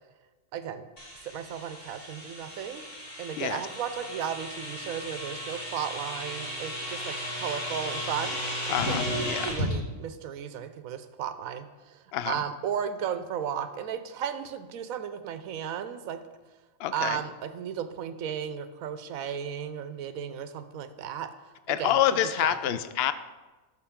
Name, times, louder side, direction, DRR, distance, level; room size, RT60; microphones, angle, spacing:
voice 1, 0.5-0.8 1.2-2.8 3.2-8.4 8.6-9.0 9.4-16.2 16.9-21.3 21.7-21.9 22.4-22.8, right 8 dB, 85° right, 10 dB, 1.1 m, -35 dB
sound 1, 1.0-9.7, left 1 dB, 40° left, 2.7 m, -35 dB
voice 2, 8.7-9.6 12.1-12.4 16.8-17.2 21.7-23.1, left 11 dB, 65° left, 13 dB, 0.6 m, -27 dB
11.5 x 6.5 x 3.7 m, 1.2 s
omnidirectional pair, 1.4 m